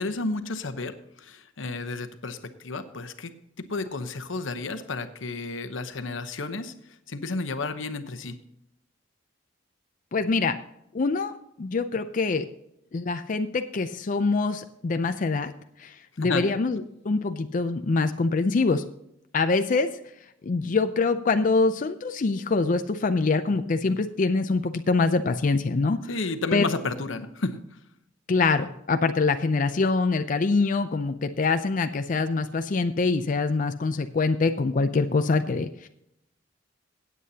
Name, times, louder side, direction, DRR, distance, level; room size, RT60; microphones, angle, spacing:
voice 1, 0.0-3.3 3.6-6.7 7.1-8.4 16.2-16.5 26.1-27.6, left 3 dB, 85° left, 10 dB, 0.9 m, -32 dB
voice 2, 10.1-10.6 10.9-11.3 11.6-12.5 12.9-15.5 15.8-18.8 19.3-19.9 20.4-26.0 26.5-26.7 28.3-35.9, left 3 dB, 45° left, 8 dB, 0.5 m, -24 dB
17.0 x 8.4 x 2.8 m, 0.79 s
head